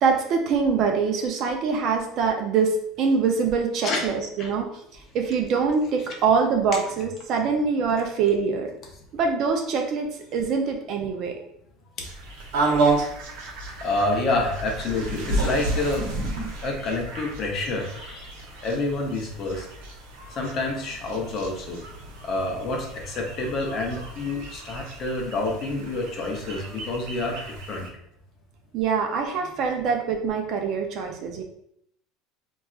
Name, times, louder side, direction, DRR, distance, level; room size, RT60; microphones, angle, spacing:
voice 1, 0.0-8.7 9.1-11.4 28.7-31.4, right 5 dB, 40° right, 3 dB, 0.4 m, -24 dB
sound 1, 12.0-27.9, right 2 dB, 75° right, 0.8 m, -31 dB
voice 2, 13.8-16.1 16.6-18.4 18.6-19.7 20.4-21.8 22.2-27.9, left 2 dB, 30° left, 0 dB, 0.6 m, -28 dB
3.9 x 2.3 x 2.3 m, 0.72 s
cardioid pair, 170°, 0 cm